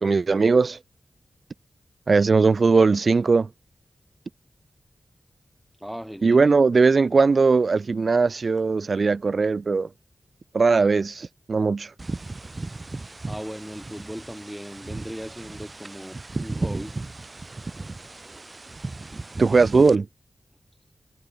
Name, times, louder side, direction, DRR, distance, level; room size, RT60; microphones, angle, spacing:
voice 1, 0.0-0.8 2.1-3.5 6.2-9.9 10.5-11.9 19.4-20.1, right 4 dB, 65° right, 0.6 m, -19 dB
voice 2, 5.8-6.4 13.3-17.0, equal, 5° right, 5.9 m, -37 dB
sound 1, 12.0-19.9, right 2 dB, 40° right, 4.7 m, -35 dB
cardioid pair, 45°, 0 cm